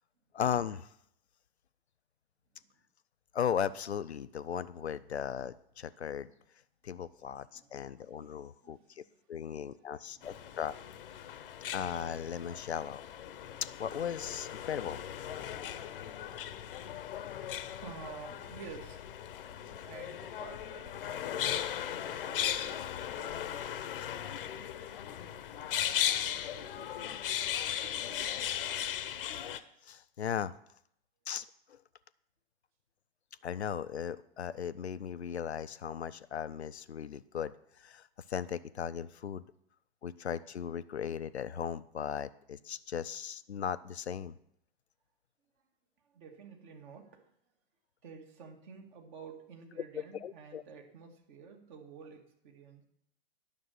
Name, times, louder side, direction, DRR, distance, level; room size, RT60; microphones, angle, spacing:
voice 1, 0.3-0.9 3.3-6.3 6.8-9.0 9.3-10.7 11.7-13.0 13.6-15.0 29.8-30.5 31.3-31.8 33.4-39.4 40.0-44.4 49.9-50.6, left 8 dB, 85° left, 15 dB, 0.5 m, -37 dB
voice 2, 7.5-8.3 8.6-9.2 9.5-10.8 15.1-15.6 17.8-19.0 19.7-24.3 25.1-28.0 46.0-47.3 48.0-52.8, right 5 dB, 50° right, 3 dB, 2.0 m, -52 dB
sound 1, 10.2-29.6, left 10 dB, 60° left, 0.8 m, -37 dB
10.0 x 6.5 x 6.5 m, 0.72 s
figure-of-eight pair, 100°, 32 cm